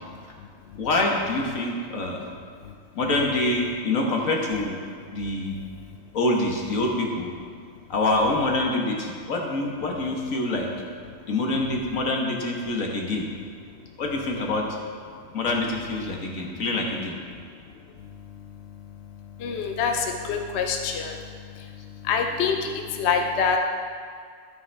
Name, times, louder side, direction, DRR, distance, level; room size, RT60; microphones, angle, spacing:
voice 1, 0.8-2.3 2.9-4.8 5.1-5.6 6.1-7.3 7.9-10.7 11.3-13.2 14.0-14.7 15.3-17.1, left 2 dB, 80° left, 0 dB, 1.7 m, -25 dB
voice 2, 5.2-6.0 11.1-11.2 16.1-16.2 17.5-17.6 18.0-23.6, left 6 dB, 60° left, 3 dB, 0.9 m, -28 dB
12.5 x 8.6 x 3.4 m, 2.1 s
omnidirectional pair, 1.4 m